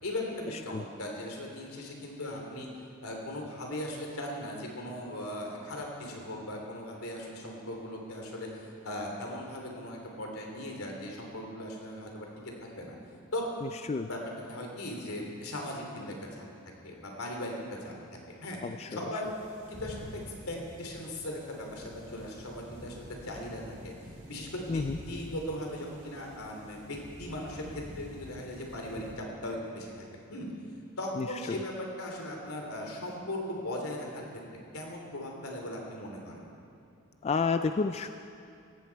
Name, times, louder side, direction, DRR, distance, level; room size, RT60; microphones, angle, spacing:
voice 1, 0.0-2.7 3.0-12.3 12.6-13.0 13.3-13.5 14.1-16.4 16.8-17.5 17.8-20.2 20.5-23.9 24.3-30.5 31.0-34.3 34.7-36.5, left 1 dB, 80° left, 0 dB, 3.0 m, -38 dB
sound 1, 19.2-29.1, equal, 35° right, 3.9 m, -48 dB
voice 2, 31.2-31.6 37.2-38.1, left 4 dB, 30° left, 9 dB, 0.3 m, -30 dB
17.5 x 16.0 x 4.6 m, 2.5 s
head